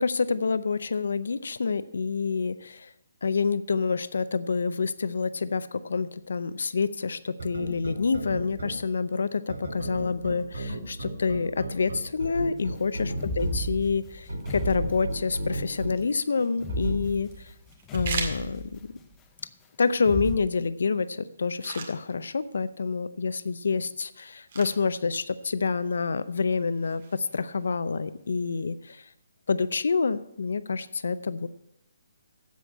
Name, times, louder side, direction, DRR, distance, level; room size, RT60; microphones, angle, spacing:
voice 1, 0.0-2.9 3.2-17.5 17.9-18.8 19.8-29.1 29.5-31.5, left 5 dB, 75° left, 14 dB, 0.6 m, -28 dB
sound 1, 7.4-8.7 9.5-13.5 14.3-15.9 16.7-16.9, right 1 dB, 90° right, 2.8 m, -33 dB
sound 2, 13.2-15.7 16.6-19.0 20.0-20.4, right 1 dB, 15° left, 0.6 m, -34 dB
sound 3, 16.2-29.2, right 4 dB, 50° right, 2.0 m, -43 dB
8.2 x 7.8 x 8.5 m, 0.80 s
hypercardioid pair, 170°, 0 cm